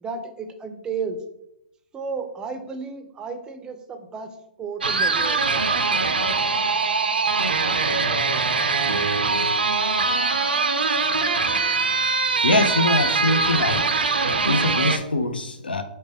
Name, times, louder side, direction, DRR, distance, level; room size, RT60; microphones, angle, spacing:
voice 1, 0.0-1.2 1.9-4.3 4.6-5.4, right 5 dB, 15° right, 7 dB, 0.4 m, -32 dB
sound 1, 4.8-15.0, right 4 dB, 85° right, 0.4 m, -22 dB
voice 2, 12.4-13.8 14.4-15.8, left 2 dB, 90° left, 7 dB, 0.5 m, -23 dB
5.0 x 2.1 x 3.3 m, 0.85 s
hypercardioid pair, 125°, 5 cm